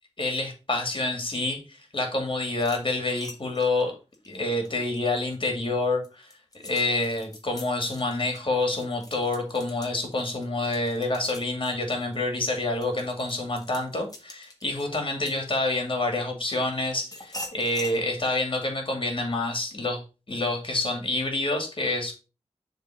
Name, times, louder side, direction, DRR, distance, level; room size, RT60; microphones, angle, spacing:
voice 1, 0.2-3.9 4.3-6.3 6.6-20.0 20.3-22.1, left 2 dB, 50° left, 4 dB, 2.2 m, -27 dB
sound 1, 2.6-5.4 5.8-16.0 16.5-18.0, left 1 dB, 35° left, 1.7 m, -44 dB
6.9 x 3.7 x 5.2 m, 0.32 s
wide cardioid pair, 75°, 11 cm